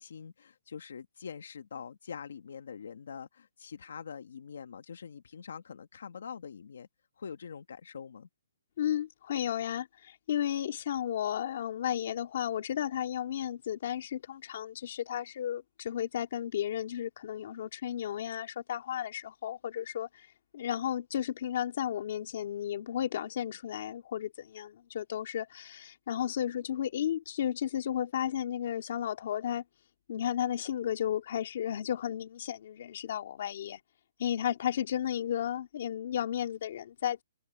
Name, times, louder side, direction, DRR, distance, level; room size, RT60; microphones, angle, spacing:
voice 1, 0.0-6.9 7.2-8.3, left 6 dB, 60° left, 1.5 m, -44 dB
voice 2, 8.8-20.1 20.5-29.6 30.1-33.8 34.2-37.2, left 10 dB, 40° left, 2.3 m, -33 dB
hypercardioid pair, 175°, 0 cm